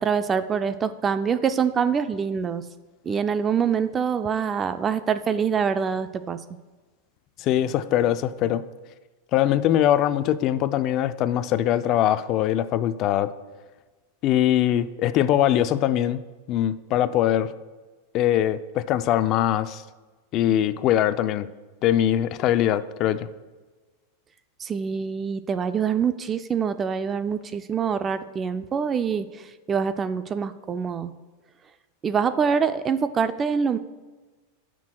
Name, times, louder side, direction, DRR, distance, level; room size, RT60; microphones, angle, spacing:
voice 1, 0.0-2.6 3.1-6.4 24.6-29.3 29.7-31.1 32.0-33.8, right 6 dB, 20° right, 12 dB, 0.4 m, -25 dB
voice 2, 7.4-8.6 9.3-13.3 14.2-16.2 16.5-17.5 18.1-19.8 20.3-21.5 21.8-23.3, left 11 dB, 40° left, 13 dB, 0.4 m, -22 dB
17.0 x 6.1 x 2.3 m, 1.3 s
supercardioid pair, 140°, 0 cm